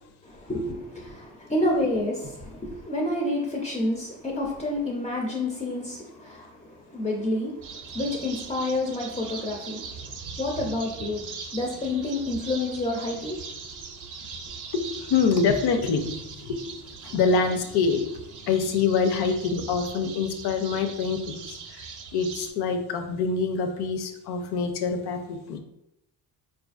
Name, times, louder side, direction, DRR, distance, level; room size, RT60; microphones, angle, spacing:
voice 1, 0.2-9.9 10.4-11.2 11.5-13.4 13.9-14.0, left 1 dB, 15° left, -1 dB, 0.4 m, -29 dB
sound 1, 7.6-22.5, right 5 dB, 50° right, 0.5 m, -40 dB
voice 2, 14.7-16.1 16.4-16.6 17.0-18.0 18.5-21.9 22.1-25.6, left 5 dB, 75° left, 6 dB, 0.6 m, -25 dB
4.4 x 2.5 x 2.4 m, 0.83 s
cardioid pair, 140°, 40 cm